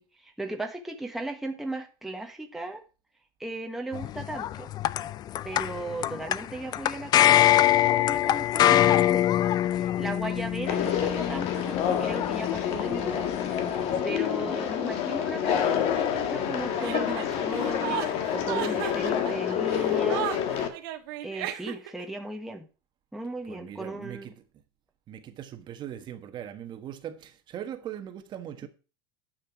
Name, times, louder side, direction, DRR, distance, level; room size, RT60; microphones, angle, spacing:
voice 1, 0.0-2.8 3.4-4.7 5.4-9.5 9.7-13.3 13.7-18.1 18.3-20.4 21.2-22.7 23.1-24.3, right 2 dB, ahead, 1.4 m, -37 dB
sound 1, 3.9-14.0, left 12 dB, 35° left, 0.4 m, -24 dB
Conversation, 10.7-20.7, left 9 dB, 55° left, 1.8 m, -28 dB
Chuckle chortle, 16.8-22.0, right 12 dB, 80° right, 1.6 m, -34 dB
voice 2, 23.5-24.3 25.1-28.7, right 10 dB, 40° right, 1.4 m, -40 dB
10.5 x 5.9 x 5.9 m
supercardioid pair, 130°, 12 cm